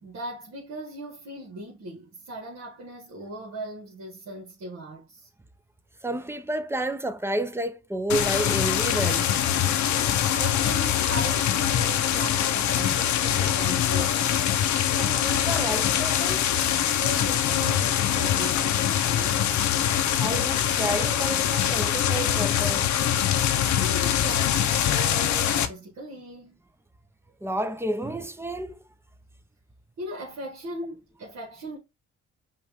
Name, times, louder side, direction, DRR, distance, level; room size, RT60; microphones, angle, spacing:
voice 1, 0.0-5.3 10.3-14.6 16.9-19.6 23.8-26.6 30.0-31.8, right 1 dB, 60° right, 1.6 m, -38 dB
voice 2, 6.0-9.3 15.0-16.5 20.2-22.9 27.4-28.8, right 1 dB, 10° right, 0.6 m, -30 dB
sound 1, 8.1-25.7, left 10 dB, 70° left, 0.7 m, -23 dB
5.6 x 2.5 x 3.5 m
cardioid pair, 90°, 30 cm